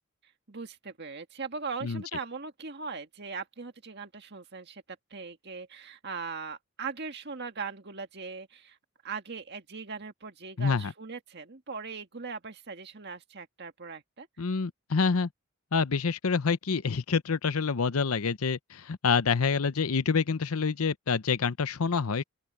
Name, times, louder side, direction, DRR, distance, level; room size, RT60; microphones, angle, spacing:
voice 1, 0.5-4.8 5.1-8.8 9.0-14.3, right 5 dB, 50° right, 1.8 m, -40 dB
voice 2, 10.6-10.9 14.4-15.3 15.7-22.2, left 5 dB, 80° left, 0.7 m, -27 dB
open air
head